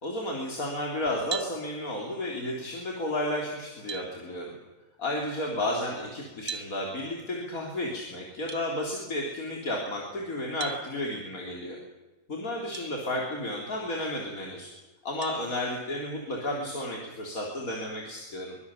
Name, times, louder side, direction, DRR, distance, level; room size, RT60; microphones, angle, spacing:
voice 1, 0.0-4.6 5.0-11.8 12.3-14.7 15.0-18.6, left 1 dB, 80° left, -1 dB, 3.9 m, -32 dB
sound 1, 1.3-1.6 3.2-3.3 3.9-4.1 6.5-6.7 8.5-8.6 10.6-10.8 12.7-12.9 13.5-13.6 15.2-15.4, right 7 dB, 70° right, 1.8 m, -36 dB
24.0 x 23.5 x 7.2 m, 1.2 s
omnidirectional pair, 1.5 m